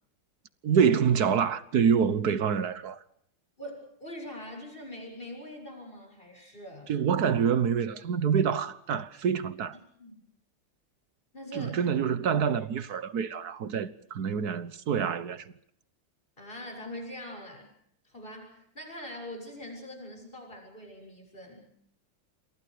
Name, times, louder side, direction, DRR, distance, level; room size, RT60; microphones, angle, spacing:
voice 1, 0.6-3.0 6.9-9.8 11.5-15.5, right 7 dB, 50° right, 1.4 m, -26 dB
voice 2, 3.6-6.9 10.0-10.2 11.3-11.8 14.2-14.6 16.4-17.7 18.0-21.7, left 1 dB, 25° left, 7.3 m, -43 dB
28.5 x 27.5 x 5.0 m
omnidirectional pair, 2.3 m